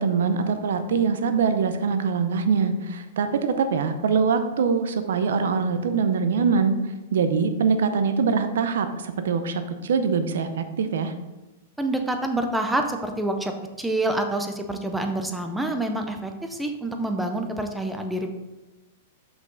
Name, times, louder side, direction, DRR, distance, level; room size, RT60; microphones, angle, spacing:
voice 1, 0.0-6.8 7.1-11.1, right 5 dB, 80° right, 9 dB, 0.7 m, -23 dB
voice 2, 11.8-18.3, right 1 dB, 5° right, 5 dB, 0.6 m, -27 dB
6.0 x 5.4 x 3.9 m, 1.1 s
hypercardioid pair, 150°, 0 cm